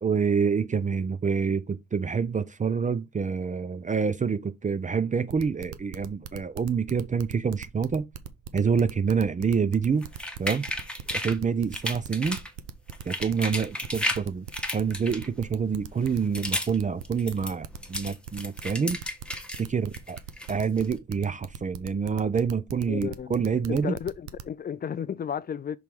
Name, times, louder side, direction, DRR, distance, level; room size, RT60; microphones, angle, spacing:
voice 1, 0.0-8.1 8.5-10.1 10.4-10.6 11.1-12.4 13.1-14.5 14.7-19.0 19.6-20.2 20.5-23.9, right 6 dB, 25° right, 0.5 m, -27 dB
sound 1, 5.3-24.5, right 9 dB, 85° right, 0.8 m, -40 dB
sound 2, 10.0-11.4 11.7-12.5 12.9-14.2 14.5-15.5 16.0-16.8 17.0-19.6 19.9-20.9, left 1 dB, 5° left, 1.2 m, -33 dB
voice 2, 22.9-23.3 23.7-25.8, left 8 dB, 30° left, 0.4 m, -33 dB
6.1 x 3.4 x 4.6 m
cardioid pair, 90°, 30 cm